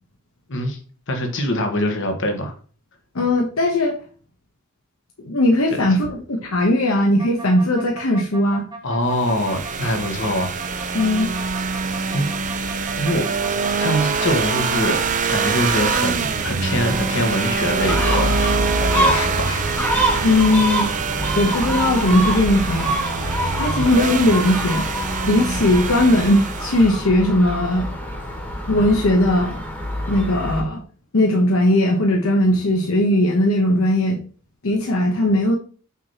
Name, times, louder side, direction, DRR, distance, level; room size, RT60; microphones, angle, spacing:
voice 1, 1.1-2.5 5.7-6.0 8.8-10.8 12.1-12.3 13.0-13.3 13.8-15.0 15.3-18.4 18.8-19.8, equal, 60° left, 1.5 m, -24 dB
voice 2, 3.1-3.9 5.2-8.7 10.9-11.3 20.2-20.9 21.4-23.0 23.6-24.9 25.3-27.9 28.7-29.6 30.1-30.8 31.1-34.2 34.6-35.6, left 1 dB, 80° left, 1.0 m, -18 dB
sound 1, 7.2-14.9 15.2-17.4 17.9-20.4 20.9-24.3, right 2 dB, 20° right, 1.0 m, -35 dB
sound 2, 9.1-27.0, right 5 dB, 40° right, 0.6 m, -25 dB
Gull seagull, 17.8-30.6, equal, 10° left, 1.5 m, -25 dB
6.0 x 3.0 x 5.6 m
head